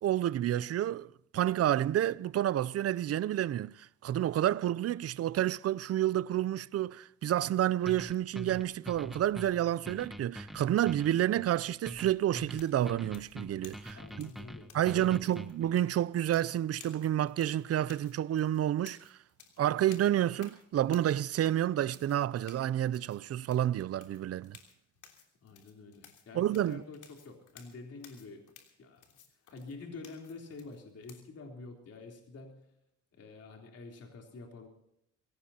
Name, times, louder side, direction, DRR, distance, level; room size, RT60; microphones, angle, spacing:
voice 1, 0.0-14.3 14.7-19.2 19.6-24.6 26.3-26.8, right 12 dB, 55° right, 0.5 m, -29 dB
sound 1, 7.9-15.7, right 1 dB, ahead, 1.0 m, -45 dB
sound 2, 12.5-31.2, left 7 dB, 80° left, 3.3 m, -58 dB
voice 2, 13.9-15.4 25.4-28.5 28.8-29.0 29.5-32.7 33.1-34.7, left 3 dB, 55° left, 3.6 m, -48 dB
24.0 x 17.5 x 2.9 m
cardioid pair, 90°, 30 cm